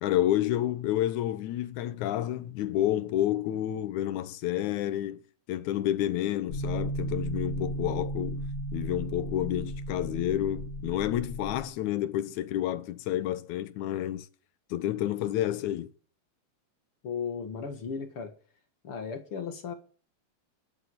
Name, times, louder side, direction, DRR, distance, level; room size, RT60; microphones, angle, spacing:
voice 1, 0.0-5.2 5.5-14.3 14.7-15.9, left 12 dB, 85° left, 2.3 m, -29 dB
sound 1, 6.5-11.6, right 1 dB, 20° left, 2.8 m, -35 dB
voice 2, 17.0-18.3 18.8-19.7, left 6 dB, 50° left, 2.3 m, -35 dB
11.5 x 8.8 x 8.6 m
omnidirectional pair, 3.3 m